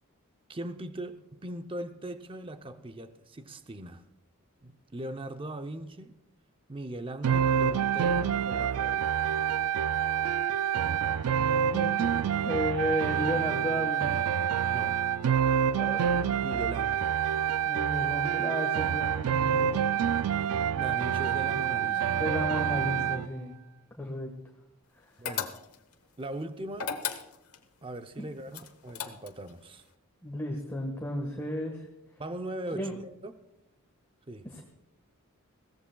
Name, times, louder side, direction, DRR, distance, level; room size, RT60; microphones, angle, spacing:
voice 1, 0.5-4.0 4.6-6.1 6.7-9.1 14.7-15.0 16.4-17.1 20.7-22.1 25.2-25.5 26.2-26.9 27.8-29.8 32.2-33.4 34.3-34.5, right 1 dB, 25° right, 8 dB, 0.6 m, -40 dB
sound 1, 7.2-23.3, right 8 dB, 85° right, 0.4 m, -27 dB
voice 2, 11.7-12.1 12.4-14.2 15.7-16.2 17.6-19.8 21.9-23.5 24.0-24.3 28.2-28.3 30.2-31.9 32.7-33.0 34.4-34.6, left 1 dB, 10° left, 0 dB, 1.4 m, -33 dB
sound 2, 25.2-25.9 26.7-27.6 28.5-29.5, left 7 dB, 85° left, 1.1 m, -35 dB
21.5 x 16.5 x 2.3 m, 0.86 s
head